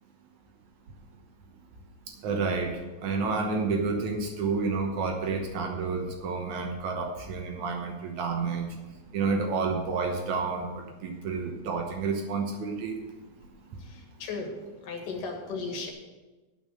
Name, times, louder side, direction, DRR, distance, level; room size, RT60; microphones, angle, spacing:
voice 1, 2.2-2.7 3.0-8.7 9.1-12.9, right 4 dB, 80° right, 2 dB, 1.6 m, -30 dB
voice 2, 13.8-14.5 14.8-15.9, left 4 dB, 60° left, 1 dB, 2.7 m, -36 dB
11.5 x 5.7 x 7.4 m, 1.2 s
omnidirectional pair, 5.1 m